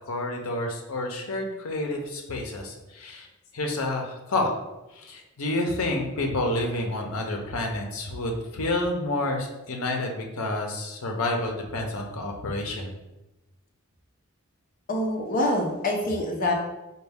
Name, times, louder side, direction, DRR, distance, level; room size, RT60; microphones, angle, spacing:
voice 1, 0.1-3.3 3.5-4.5 4.9-12.9, left 2 dB, 80° left, 2 dB, 0.6 m, -29 dB
voice 2, 14.9-16.5, left 1 dB, 40° left, 0 dB, 0.6 m, -25 dB
4.3 x 2.2 x 3.4 m, 1.0 s
head